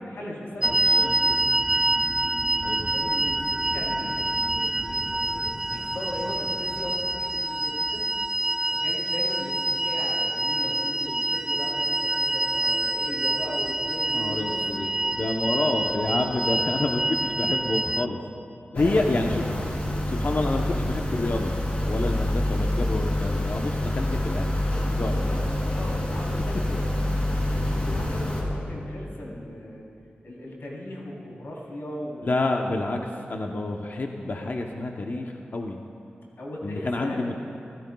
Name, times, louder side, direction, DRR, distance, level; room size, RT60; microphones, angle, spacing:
voice 1, 0.0-1.8 2.9-8.1 8.7-15.7 18.7-19.1 24.9-27.0 27.2-29.8 30.2-32.4 36.4-37.3, left 1 dB, 85° left, -4 dB, 3.5 m, -38 dB
sound 1, 0.6-18.1, right 2 dB, 10° right, 0.3 m, -26 dB
voice 2, 14.1-18.2 18.8-19.3 20.1-21.6 21.8-24.5 24.9-25.2 32.2-33.0 33.3-35.8 36.6-37.3, left 2 dB, 55° left, 2 dB, 0.9 m, -28 dB
sound 2, 18.7-28.4, left 1 dB, 30° left, 2.9 m, -27 dB
26.5 x 16.0 x 2.3 m, 2.6 s
wide cardioid pair, 70°, 4 cm